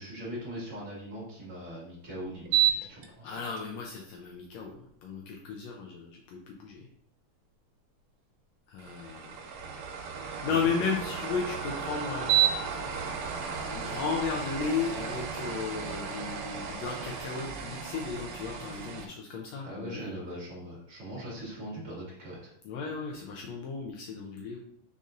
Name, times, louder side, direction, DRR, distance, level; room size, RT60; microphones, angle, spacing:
voice 1, 0.0-3.3 10.4-10.6 19.6-22.5, right 1 dB, 30° right, -7 dB, 1.8 m, -41 dB
sound 1, 2.5-3.1 3.6-3.7 8.8-19.1, right 8 dB, 80° right, 2.3 m, -32 dB
voice 2, 3.2-6.9 8.7-9.4 10.2-12.4 13.3-20.2 22.6-24.6, left 5 dB, 85° left, 0 dB, 1.5 m, -35 dB
5.1 x 4.1 x 2.5 m, 0.68 s
omnidirectional pair, 3.8 m